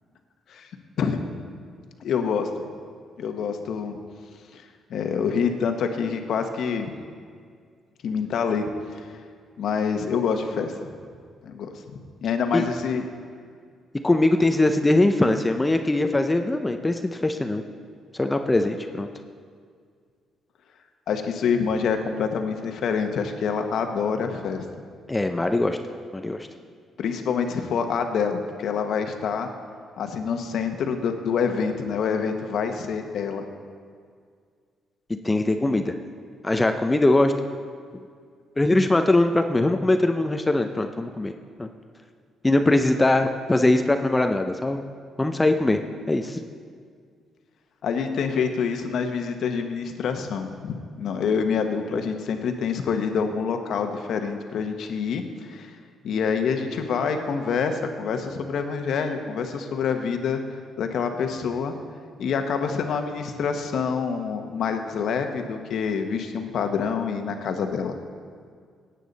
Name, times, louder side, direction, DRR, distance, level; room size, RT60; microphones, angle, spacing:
voice 1, 2.0-2.5 3.2-4.0 4.5-4.6 4.9-6.9 8.0-9.1 9.6-10.9 11.4-13.1 21.1-24.6 27.0-29.5 30.0-33.5 47.8-55.7 56.0-60.4 60.8-61.7 62.2-68.0, left 6 dB, 70° left, 6 dB, 1.1 m, -26 dB
voice 2, 14.0-17.6 18.2-19.1 25.1-25.8 26.1-26.4 35.1-35.9 36.4-37.3 38.6-41.3 41.6-41.7 42.4-44.8 45.2-45.8 46.1-46.4, left 2 dB, 15° left, 6 dB, 0.6 m, -21 dB
16.5 x 9.0 x 4.1 m, 2.1 s
cardioid pair, 90°, 0 cm